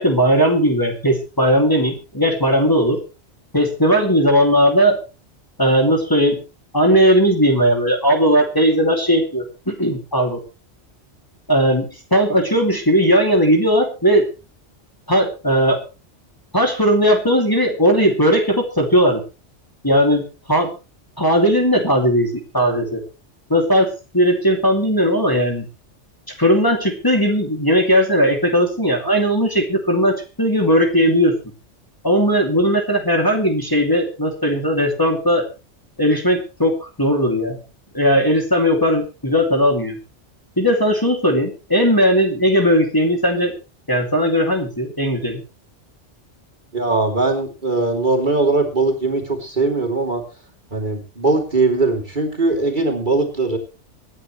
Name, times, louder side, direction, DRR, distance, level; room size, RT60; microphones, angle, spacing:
voice 1, 0.0-3.0 3.5-5.0 5.6-6.4 6.7-10.4 11.5-11.9 12.1-14.2 15.1-15.8 16.5-19.2 19.8-20.2 20.5-20.7 21.2-23.0 23.5-25.6 26.4-31.3 32.0-35.4 36.0-37.6 37.9-40.0 40.6-43.5 43.9-45.4, equal, 20° left, 2 dB, 2.6 m, -17 dB
voice 2, 46.7-50.2 50.7-53.6, right 3 dB, 40° right, 2 dB, 3.5 m, -20 dB
25.0 x 10.0 x 3.2 m, 0.31 s
omnidirectional pair, 1.2 m